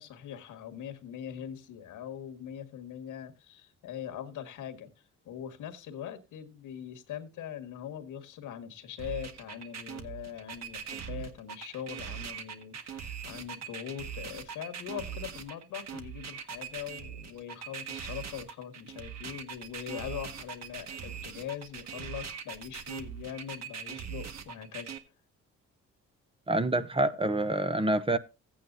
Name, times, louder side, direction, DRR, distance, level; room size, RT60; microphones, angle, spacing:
voice 1, 0.0-4.9 5.3-24.9, left 9 dB, 85° left, 1.8 m, -42 dB
sound 1, 9.0-25.0, right 7 dB, 60° right, 1.7 m, -41 dB
voice 2, 26.5-28.2, right 2 dB, 20° right, 0.8 m, -27 dB
16.0 x 8.8 x 2.7 m
cardioid pair, 90°, 30 cm